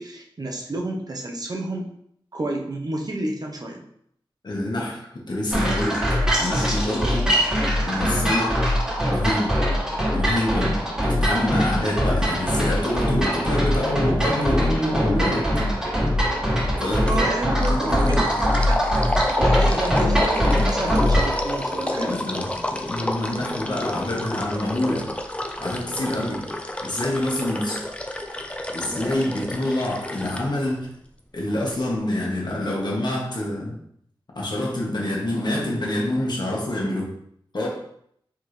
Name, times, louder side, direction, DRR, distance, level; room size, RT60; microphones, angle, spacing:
voice 1, 0.0-1.9 2.3-3.8 17.1-18.9 19.3-22.2, right 1 dB, 45° right, 1 dB, 0.8 m, -30 dB
voice 2, 4.4-6.1 6.4-7.3 7.8-8.6 9.1-9.6 10.1-15.5 16.8-18.4 22.0-25.1 25.6-26.5 26.8-27.8 28.7-30.9 31.3-33.8 34.3-37.1 37.5-37.7, left 1 dB, 50° left, -3 dB, 1.3 m, -26 dB
sound 1, 5.5-21.4, equal, 10° right, 1.6 m, -22 dB
sound 2, 17.1-17.3 17.6-30.4, left 1 dB, 15° left, 0.5 m, -29 dB
4.6 x 3.6 x 3.2 m, 0.69 s
wide cardioid pair, 90°, 9 cm